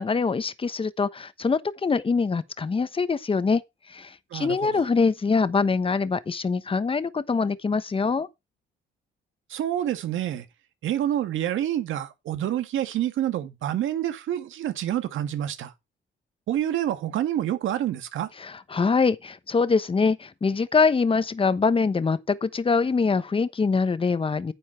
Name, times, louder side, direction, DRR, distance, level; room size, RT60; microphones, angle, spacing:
voice 1, 0.0-3.6 3.9-8.3 18.4-24.5, left 4 dB, 25° left, 1.1 m, -24 dB
voice 2, 4.3-4.9 9.5-10.5 10.8-15.7 16.5-18.3, right 11 dB, 80° right, 1.9 m, -27 dB
9.9 x 8.2 x 4.5 m
cardioid pair, 90°, 20 cm